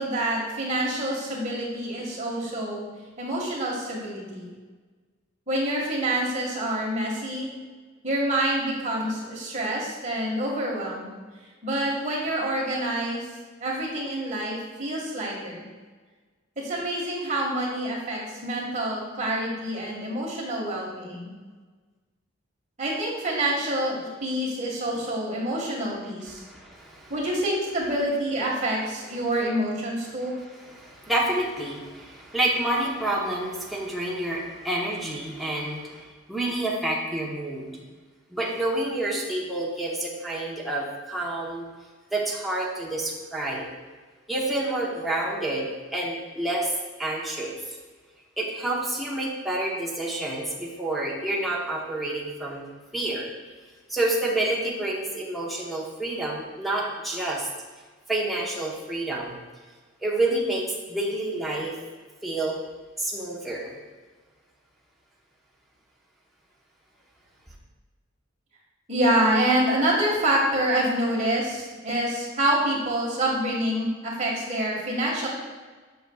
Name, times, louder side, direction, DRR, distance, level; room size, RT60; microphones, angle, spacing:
voice 1, 0.0-2.9 3.2-4.5 5.5-7.5 8.0-11.1 11.6-13.3 13.6-15.7 16.6-21.3 22.8-26.4 27.1-30.4 68.9-75.3, right 1 dB, 35° right, -3 dB, 1.7 m, -27 dB
voice 2, 26.3-27.1 30.7-37.7 38.3-41.7 42.1-43.7 44.3-46.7 47.0-47.6 48.4-52.7 52.9-53.3 53.9-57.5 58.1-59.3 60.0-60.6 60.9-61.7 62.2-62.6 63.0-63.8, right 1 dB, ahead, -5 dB, 0.9 m, -28 dB
7.7 x 6.3 x 2.3 m, 1.4 s
head